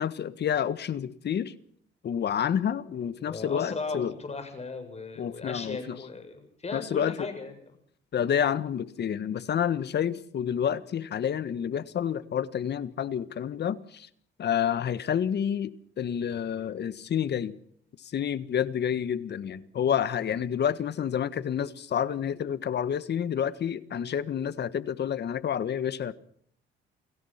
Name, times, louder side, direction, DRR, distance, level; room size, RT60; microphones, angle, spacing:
voice 1, 0.0-1.5 2.0-4.1 5.2-6.0 6.7-7.3 8.1-14.1 14.4-17.5 18.0-26.1, left 8 dB, 60° left, 1.6 m, -29 dB
voice 2, 3.2-7.6, left 4 dB, 35° left, 7.4 m, -37 dB
29.0 x 18.0 x 5.9 m
cardioid pair, 90°, 20 cm